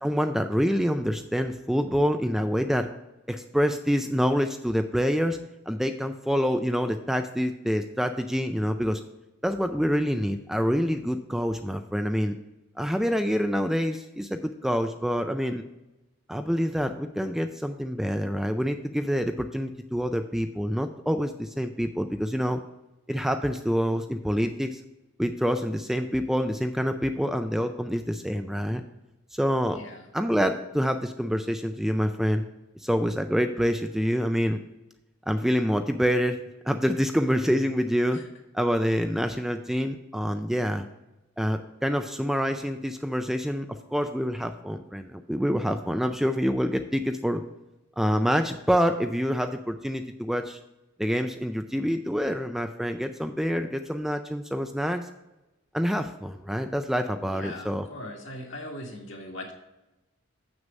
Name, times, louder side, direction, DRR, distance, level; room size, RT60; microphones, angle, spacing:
voice 1, 0.0-2.9 3.3-5.4 5.7-9.0 9.4-12.4 12.8-15.6 16.3-22.6 23.1-24.8 25.2-28.8 29.3-29.8 30.1-32.4 32.8-34.6 35.3-36.4 36.7-38.2 38.5-40.9 41.4-47.4 48.0-50.6 51.0-55.1 55.7-57.9, equal, ahead, 6 dB, 0.3 m, -26 dB
voice 2, 29.7-30.1 37.4-37.6 38.1-38.2 57.3-59.5, left 1 dB, 65° left, 0 dB, 2.0 m, -39 dB
7.5 x 6.4 x 5.2 m, 0.98 s
head